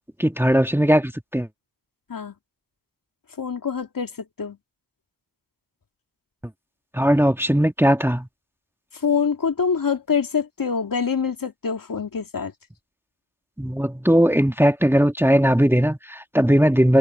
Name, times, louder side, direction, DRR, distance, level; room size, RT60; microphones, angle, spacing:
voice 1, 0.2-1.5 6.9-8.3 13.6-17.0, equal, 5° right, 2.0 m, -18 dB
voice 2, 3.4-4.1 4.4-4.6 9.0-12.5, left 6 dB, 50° left, 2.6 m, -25 dB
cardioid pair, 45°, 42 cm